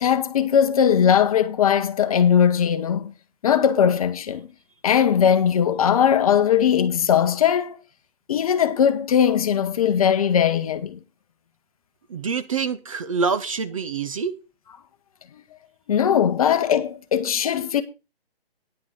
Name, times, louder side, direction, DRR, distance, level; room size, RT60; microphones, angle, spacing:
voice 1, 0.0-3.1 3.4-4.5 4.8-7.8 8.3-11.0 15.3-15.4 15.9-17.8, left 8 dB, 35° left, 1.0 m, -19 dB
voice 2, 12.1-14.4, right 5 dB, 35° right, 0.6 m, -26 dB
9.8 x 6.1 x 6.1 m
hypercardioid pair, 160°, 30 cm